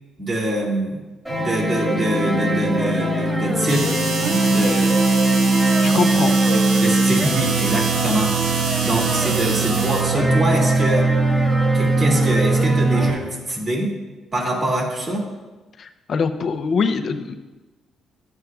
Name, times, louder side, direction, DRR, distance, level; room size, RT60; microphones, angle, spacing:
voice 1, 0.2-1.0 1.4-4.0 4.5-5.0 6.8-8.4 8.8-11.1 11.7-13.9 14.3-15.3, right 1 dB, 40° right, -2 dB, 2.4 m, -24 dB
sound 1, 1.2-13.1, right 2 dB, 10° right, 1.7 m, -20 dB
sound 2, 3.7-10.0, right 3 dB, 85° right, 1.6 m, -27 dB
voice 2, 5.8-6.8 8.7-8.8 15.8-17.4, left 5 dB, 50° left, 8 dB, 0.6 m, -24 dB
12.0 x 7.8 x 2.4 m, 1.2 s
cardioid pair, 90°, 0 cm